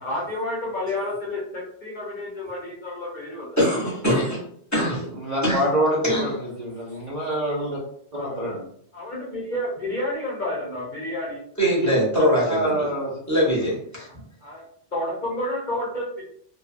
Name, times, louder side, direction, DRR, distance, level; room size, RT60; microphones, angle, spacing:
voice 1, 0.0-3.5 8.1-8.6 8.9-11.4 14.1-14.2 14.4-14.6 14.9-16.2, left 1 dB, 50° left, -5 dB, 0.8 m, -30 dB
voice 2, 3.6-4.4 4.7-5.1 5.4-5.6 6.0-6.2 11.6-12.7 13.3-14.1, equal, 15° left, -6 dB, 0.8 m, -22 dB
voice 3, 5.2-7.8 8.1-8.6 11.8-11.9 12.4-13.1, right 1 dB, 45° right, -5 dB, 0.6 m, -26 dB
2.6 x 2.1 x 2.4 m, 0.65 s
omnidirectional pair, 1.2 m